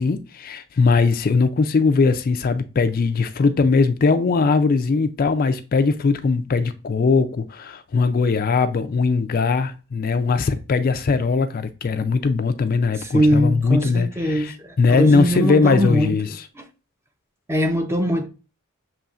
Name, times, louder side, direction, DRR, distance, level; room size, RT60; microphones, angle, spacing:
voice 1, 0.0-16.5, left 4 dB, 40° left, 0.3 m, -20 dB
voice 2, 13.0-16.1 16.6-16.7 17.5-18.3, equal, 10° right, 0.6 m, -21 dB
6.9 x 3.0 x 2.4 m
head